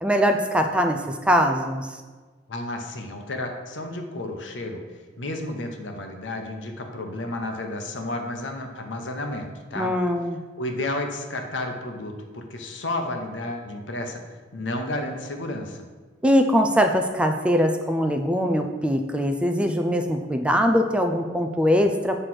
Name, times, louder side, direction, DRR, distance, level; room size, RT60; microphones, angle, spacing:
voice 1, 0.0-2.0 9.7-10.4 16.2-22.2, equal, 5° right, 5 dB, 0.3 m, -22 dB
voice 2, 2.5-4.8 5.2-9.9 10.6-14.2 14.5-15.9, left 1 dB, 80° left, 4 dB, 0.9 m, -32 dB
7.7 x 3.3 x 5.9 m, 1.4 s
head